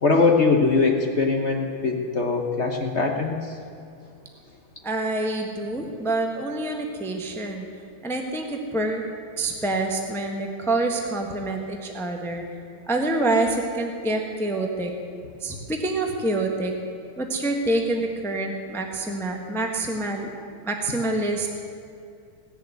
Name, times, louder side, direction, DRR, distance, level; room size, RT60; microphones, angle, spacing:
voice 1, 0.0-3.6, left 4 dB, 45° left, 3 dB, 0.9 m, -21 dB
voice 2, 4.8-7.7 8.0-9.0 9.4-12.4 12.9-14.9 15.4-16.7 17.2-20.3 20.6-21.6, right 2 dB, ahead, 3 dB, 0.9 m, -26 dB
17.5 x 7.2 x 9.2 m, 2.5 s
omnidirectional pair, 2.4 m